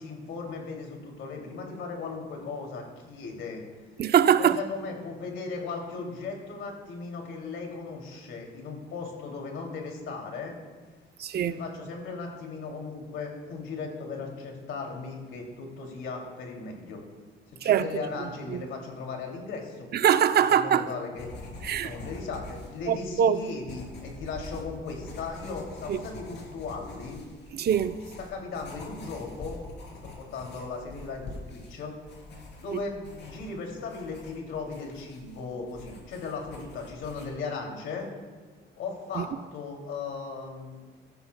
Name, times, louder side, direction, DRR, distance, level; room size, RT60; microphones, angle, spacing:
voice 1, 0.0-3.6 4.4-10.6 11.3-17.0 17.6-19.9 20.5-21.3 21.8-27.2 28.2-29.6 30.2-31.9 32.6-38.1 38.8-40.8, left 4 dB, 80° left, 2.6 m, -37 dB
voice 2, 4.0-4.6 11.2-11.6 17.6-17.9 18.2-18.6 19.9-20.9 21.6-21.9 22.9-23.4 25.9-26.0 27.5-28.0 39.2-39.3, right 9 dB, 55° right, 0.6 m, -23 dB
sound 1, 21.2-37.3, left 2 dB, 60° left, 3.4 m, -45 dB
16.0 x 13.5 x 2.2 m
cardioid pair, 90°, 20 cm